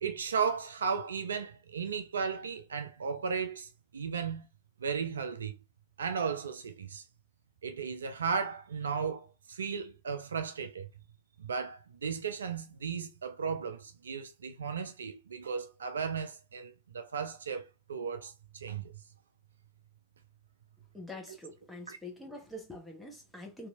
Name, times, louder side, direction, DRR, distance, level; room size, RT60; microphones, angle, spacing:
voice 1, 0.0-4.5 4.8-5.6 6.0-7.0 7.6-10.9 11.4-18.9 21.3-21.4 21.9-22.0, right 6 dB, 70° right, 0.4 m, -35 dB
voice 2, 20.9-23.7, left 1 dB, 5° left, 1.0 m, -45 dB
2.9 x 2.6 x 2.3 m
figure-of-eight pair, 90°, 0 cm